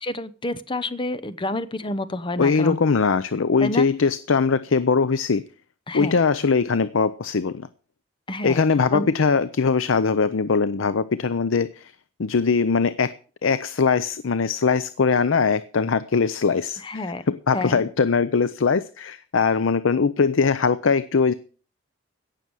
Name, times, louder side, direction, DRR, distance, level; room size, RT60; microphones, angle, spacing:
voice 1, 0.0-2.8 3.6-3.9 5.9-6.2 8.3-8.6 8.9-9.1 16.8-17.2 17.5-17.9, left 2 dB, 25° left, 0.8 m, -28 dB
voice 2, 2.4-5.4 5.9-7.7 8.4-11.9 12.2-13.1 13.4-16.8 17.3-21.3, left 5 dB, 85° left, 0.6 m, -21 dB
17.0 x 6.9 x 6.3 m
head